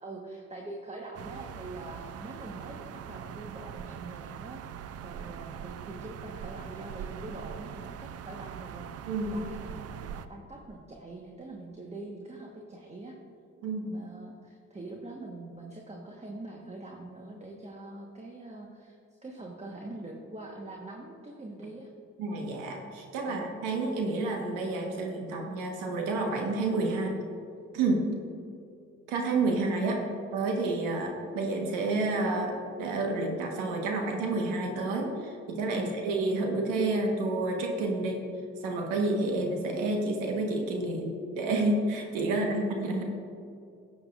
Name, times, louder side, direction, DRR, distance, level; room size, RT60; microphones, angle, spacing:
voice 1, 0.0-4.7 5.0-8.9 9.3-13.2 13.8-19.0 19.2-21.9 23.2-23.5 24.1-24.2 26.9-27.2 29.9-30.1 35.7-36.0 42.3-42.6, right 2 dB, 20° right, 0 dB, 1.3 m, -44 dB
sound 1, 1.1-10.3, right 8 dB, 55° right, 0.5 m, -42 dB
voice 2, 9.0-9.4 13.6-13.9 22.2-27.1 27.7-28.0 29.1-30.0 30.3-38.2 38.6-43.0, right 2 dB, 85° right, 1 dB, 1.3 m, -29 dB
13.0 x 8.1 x 2.5 m, 2.5 s
supercardioid pair, 55°, 31 cm